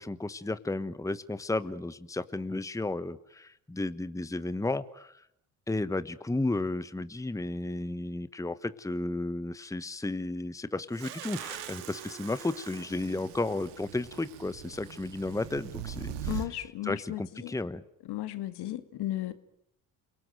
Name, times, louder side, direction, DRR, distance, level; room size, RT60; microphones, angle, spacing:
voice 1, 0.0-5.2 5.7-16.6 16.8-17.8, left 2 dB, 5° left, 1.2 m, -33 dB
sound 1, 10.9-16.5, right 9 dB, 75° right, 2.5 m, -41 dB
voice 2, 16.2-17.5 18.1-19.3, left 14 dB, 65° left, 2.1 m, -35 dB
29.5 x 19.0 x 9.2 m
hypercardioid pair, 55°, 43 cm